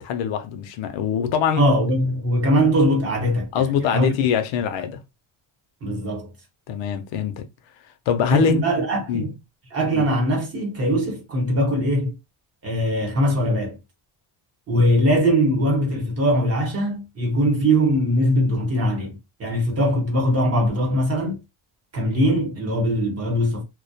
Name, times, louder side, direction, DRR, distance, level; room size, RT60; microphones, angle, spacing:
voice 1, 0.0-1.6 3.5-5.0 6.7-7.5 8.1-8.6 9.1-9.3 9.9-10.0, left 7 dB, 65° left, 0.5 m, -23 dB
voice 2, 1.6-4.1 5.8-6.3 8.3-9.4 9.7-12.2 12.6-13.8 14.7-21.4 21.9-23.6, equal, 30° right, 0.8 m, -21 dB
2.2 x 2.1 x 2.6 m
cardioid pair, 160°, 49 cm